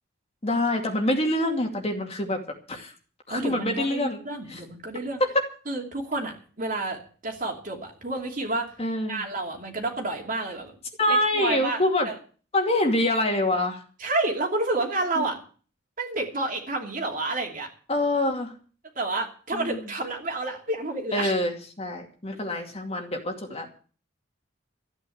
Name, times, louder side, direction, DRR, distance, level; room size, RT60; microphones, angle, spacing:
voice 1, 0.4-2.4 2.7-2.9 3.3-4.2 4.5-4.6 5.2-5.3 8.8-9.2 11.0-12.1 12.5-13.8 15.2-15.3 17.9-18.5 19.5-19.8 21.1-23.7, left 1 dB, 30° left, 3 dB, 2.4 m, -25 dB
voice 2, 3.3-5.2 5.7-8.7 9.1-10.7 11.1-12.1 14.0-15.4 16.0-17.7 19.0-21.3 23.5-23.6, right 2 dB, 45° right, 1 dB, 2.8 m, -30 dB
14.0 x 9.5 x 7.9 m, 0.40 s
head